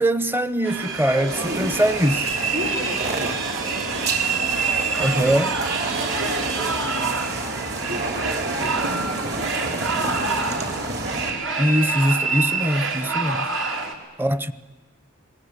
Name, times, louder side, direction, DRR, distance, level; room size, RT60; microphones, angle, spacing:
voice 1, 0.0-2.4 5.0-5.5 11.6-13.5 14.2-14.5, equal, 10° right, 0.7 m, -22 dB
sound 1, 0.6-13.9, right 4 dB, 70° right, 3.2 m, -27 dB
voice 2, 1.1-1.8 2.5-4.2 5.0-5.2 5.9-7.3 7.8-10.8 13.7-14.0, left 1 dB, 85° right, 5.2 m, -35 dB
sound 2, 1.3-11.3, right 2 dB, 55° right, 3.4 m, -29 dB
29.5 x 21.0 x 8.3 m
head